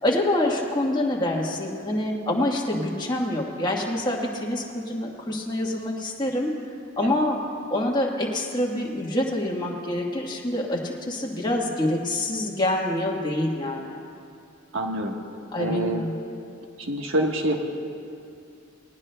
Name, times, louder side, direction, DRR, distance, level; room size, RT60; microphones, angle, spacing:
voice 1, 0.0-6.5 7.0-7.4 7.7-13.9 15.5-16.2, left 1 dB, 20° left, -2 dB, 1.3 m, -26 dB
voice 2, 14.7-15.2 15.6-16.1 16.8-17.6, right 1 dB, 75° right, 2 dB, 1.3 m, -26 dB
19.0 x 19.0 x 2.2 m, 2.5 s
head